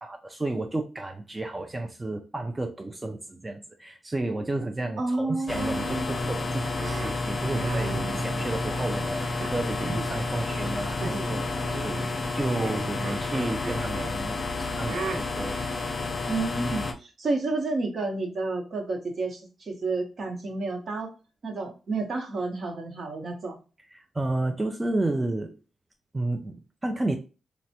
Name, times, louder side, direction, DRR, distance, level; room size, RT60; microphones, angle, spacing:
voice 1, 0.0-15.6 23.9-25.6 26.1-27.2, right 2 dB, 15° right, 4 dB, 0.3 m, -32 dB
voice 2, 5.0-6.2 16.3-21.1 21.4-23.6, right 3 dB, 50° right, 2 dB, 0.9 m, -30 dB
sound 1, 5.5-16.9, left 3 dB, 40° left, 0.6 m, -30 dB
sound 2, 6.8-8.9 9.4-10.2 10.5-10.7 11.0-11.4 11.7-14.1 14.8-15.2, right 4 dB, 80° right, 0.5 m, -37 dB
3.2 x 2.0 x 2.7 m, 0.32 s
cardioid pair, 115°, 0 cm